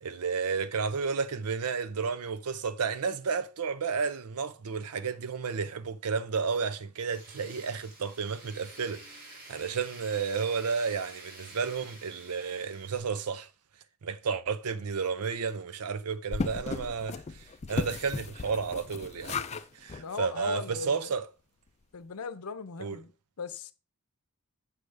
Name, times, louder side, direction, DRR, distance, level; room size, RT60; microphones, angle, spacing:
voice 1, 0.0-13.5 14.0-21.3 22.8-23.0, right 5 dB, 90° right, 0.6 m, -32 dB
Tools, 7.1-13.0, right 2 dB, 45° right, 2.1 m, -50 dB
sound 1, 16.3-19.6 19.9-20.0 20.5-20.6 20.8-20.9, left 4 dB, 30° left, 0.4 m, -35 dB
voice 2, 20.0-21.1 21.9-23.1 23.4-23.7, left 5 dB, 75° left, 0.7 m, -38 dB
7.8 x 6.0 x 3.3 m
head